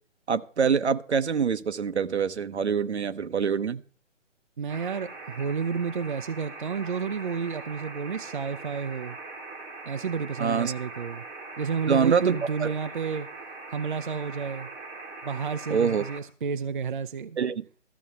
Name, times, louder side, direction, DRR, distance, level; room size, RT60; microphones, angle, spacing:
voice 1, 0.3-3.8 10.4-10.7 11.9-12.7 15.7-16.0 17.4-17.7, right 6 dB, 60° right, 0.9 m, -25 dB
voice 2, 4.6-9.2 9.9-11.2 11.6-13.3 13.7-14.7 15.2-17.4, right 6 dB, 40° right, 0.5 m, -31 dB
sound 1, 4.7-16.2, right 3 dB, 10° right, 1.0 m, -41 dB
13.5 x 7.2 x 6.7 m
figure-of-eight pair, 140°, 37 cm